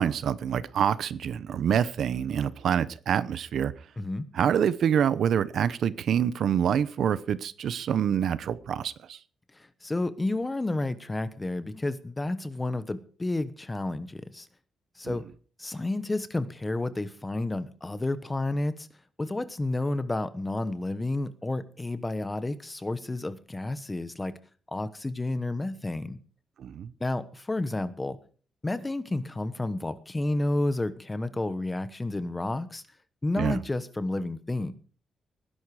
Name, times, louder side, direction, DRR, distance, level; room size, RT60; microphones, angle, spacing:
voice 1, 0.0-3.7 4.3-9.2 15.0-15.2 26.6-26.9 33.4-33.6, right 8 dB, 60° right, 16 dB, 0.8 m, -26 dB
voice 2, 4.0-4.3 9.8-14.5 15.0-15.2 15.6-18.9 19.2-24.4 24.7-26.2 27.0-28.2 28.6-32.8 33.2-34.7, left 2 dB, 15° left, 13 dB, 1.1 m, -31 dB
19.5 x 11.0 x 4.9 m, 0.41 s
wide cardioid pair, 165°, 0 cm